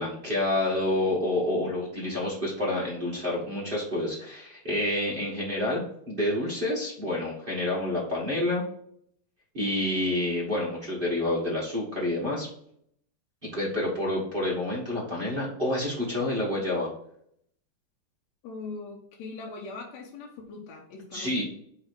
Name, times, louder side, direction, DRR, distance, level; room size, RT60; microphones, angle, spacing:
voice 1, 0.0-5.8 6.1-8.6 9.5-12.5 13.5-16.9 21.1-21.4, left 1 dB, 30° right, -7 dB, 0.9 m, -28 dB
voice 2, 18.4-21.4, left 3 dB, 70° left, 0 dB, 2.0 m, -41 dB
4.8 x 4.7 x 6.1 m, 0.69 s
omnidirectional pair, 3.5 m